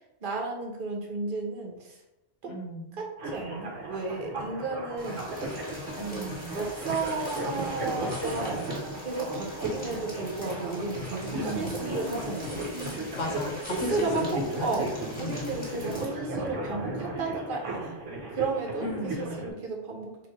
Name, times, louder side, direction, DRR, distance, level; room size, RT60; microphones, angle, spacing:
voice 1, 0.2-2.0 2.4-2.5 3.0-5.3 6.1-8.7 9.0-12.6 13.7-14.9 15.2-18.0 18.3-18.9 19.2-20.3, right 3 dB, 50° right, 1 dB, 1.0 m, -33 dB
voice 2, 2.4-3.0 5.9-6.6 11.3-11.9 13.1-14.9 15.2-15.5 18.8-19.5, left 1 dB, 80° left, 2 dB, 1.2 m, -35 dB
sound 1, 3.2-19.5, right 2 dB, 85° right, 1.3 m, -36 dB
sound 2, 5.0-16.0, left 1 dB, 5° left, 1.6 m, -43 dB
sound 3, 10.3-17.1, left 1 dB, 55° left, 0.8 m, -44 dB
4.1 x 2.7 x 4.7 m, 0.92 s
omnidirectional pair, 1.2 m